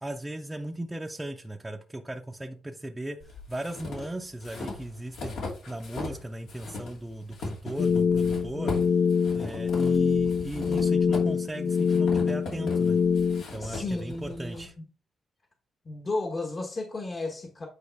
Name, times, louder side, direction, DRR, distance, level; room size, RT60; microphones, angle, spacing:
voice 1, 0.0-3.2 3.5-5.4 5.7-8.8 9.3-13.0 13.5-14.7, right 1 dB, 10° right, 0.7 m, -37 dB
sound 1, 3.2-6.2 6.5-14.6, left 3 dB, 90° left, 2.6 m, -39 dB
sound 2, 7.8-13.4, left 6 dB, 60° left, 0.4 m, -24 dB
voice 2, 13.6-14.8 15.8-17.7, left 2 dB, 35° left, 1.1 m, -33 dB
8.5 x 4.7 x 3.4 m
cardioid pair, 105°, 0 cm